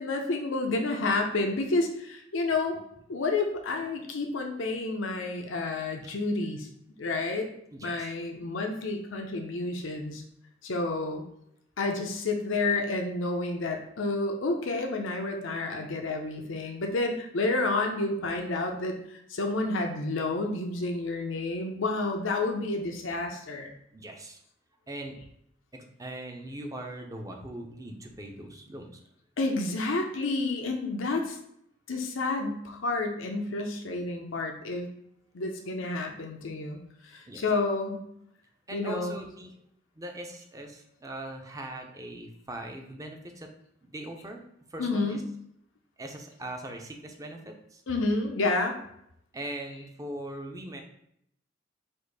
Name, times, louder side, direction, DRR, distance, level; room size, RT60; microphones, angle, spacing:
voice 1, 0.0-2.8 3.1-6.7 7.0-7.5 7.8-10.2 10.6-11.2 11.8-23.7 29.4-31.4 31.9-34.9 35.3-38.0 38.7-39.2 44.8-45.2 47.9-48.8, left 2 dB, 85° left, 3 dB, 0.7 m, -30 dB
voice 2, 7.7-8.1 23.9-24.4 24.9-25.2 25.7-29.0 37.3-37.4 38.7-39.5 40.0-43.5 43.8-44.4 44.7-45.2 46.0-47.8 49.3-50.8, right 1 dB, 20° right, 3 dB, 0.6 m, -40 dB
4.4 x 2.6 x 4.7 m, 0.73 s
head